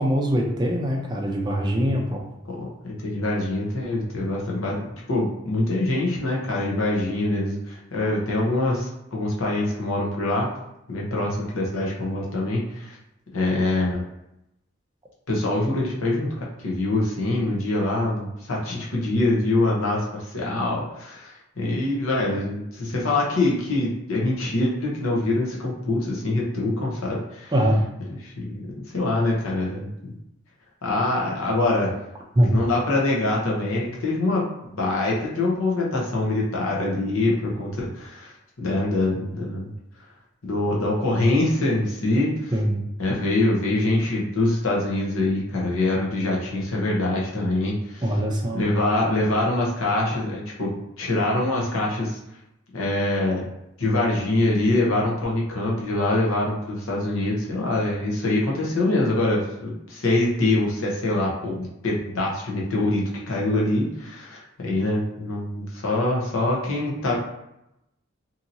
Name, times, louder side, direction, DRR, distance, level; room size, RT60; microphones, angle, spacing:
voice 1, 0.0-2.3 27.5-27.9 32.4-32.5 42.5-42.8 48.0-48.7, equal, 20° right, -1 dB, 0.4 m, -22 dB
voice 2, 2.5-10.5 10.9-13.0 13.3-14.0 15.3-27.5 28.2-30.1 30.8-32.0 32.5-38.3 38.6-39.7 40.4-42.5 43.0-48.1 48.5-52.2 52.7-53.4 53.8-67.1, left 2 dB, 80° left, -3 dB, 0.8 m, -24 dB
2.7 x 2.7 x 2.6 m, 0.84 s
head